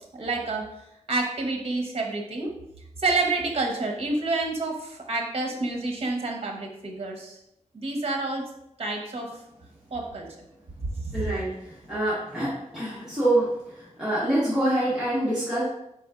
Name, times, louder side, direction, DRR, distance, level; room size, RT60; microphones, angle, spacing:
voice 1, 0.1-0.6 1.1-2.5 3.0-7.4 7.7-8.4 8.8-9.3 9.9-10.3 11.0-11.2, right 3 dB, 50° right, 1 dB, 0.8 m, -28 dB
voice 2, 11.1-11.5 11.9-13.5 13.7-15.6, right 1 dB, 5° right, -10 dB, 1.2 m, -25 dB
4.4 x 4.1 x 2.4 m, 0.83 s
wide cardioid pair, 105°, 12 cm